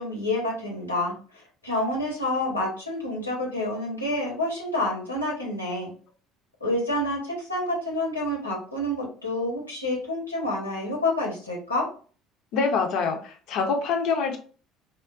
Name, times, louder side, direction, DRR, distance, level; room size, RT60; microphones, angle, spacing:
voice 1, 0.0-5.9 6.6-11.9, left 1 dB, 90° left, -3 dB, 1.1 m, -28 dB
voice 2, 12.5-14.4, left 5 dB, 55° left, 3 dB, 0.6 m, -25 dB
3.6 x 2.1 x 2.4 m, 0.39 s
figure-of-eight pair, 60°, 0 cm